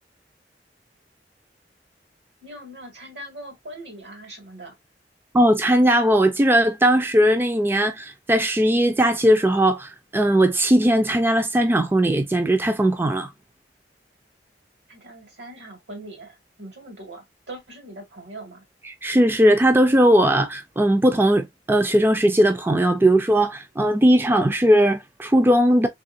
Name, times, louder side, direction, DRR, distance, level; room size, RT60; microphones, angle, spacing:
voice 1, 2.4-4.7 14.9-18.6, right 1 dB, 75° right, 2.2 m, -41 dB
voice 2, 5.3-13.3 18.8-25.9, right 1 dB, 15° right, 0.4 m, -18 dB
3.5 x 3.4 x 2.6 m
head